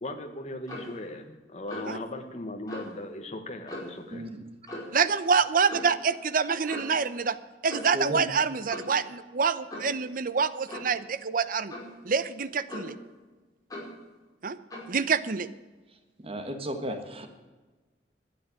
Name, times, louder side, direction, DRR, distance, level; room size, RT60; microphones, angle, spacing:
voice 1, 0.0-4.2, left 1 dB, 40° left, 5 dB, 1.4 m, -38 dB
Clock, 0.6-1.0 1.7-2.0 2.7-2.9 3.7-4.0 4.7-5.0 5.7-5.9 6.7-7.0 7.7-8.0 8.7-9.0 9.7-10.0 10.7-11.0 11.7-12.0 12.7-13.1 13.7-14.0 14.7-14.9, left 1 dB, 20° left, 5.1 m, -39 dB
voice 2, 4.1-4.4 7.9-8.3 16.2-17.3, right 1 dB, 35° right, 6 dB, 1.6 m, -34 dB
voice 3, 4.9-7.4 7.6-11.7 12.0-13.0 14.4-14.6 14.9-15.5, right 5 dB, 50° right, 14 dB, 0.8 m, -26 dB
12.5 x 9.3 x 9.2 m, 1.2 s
head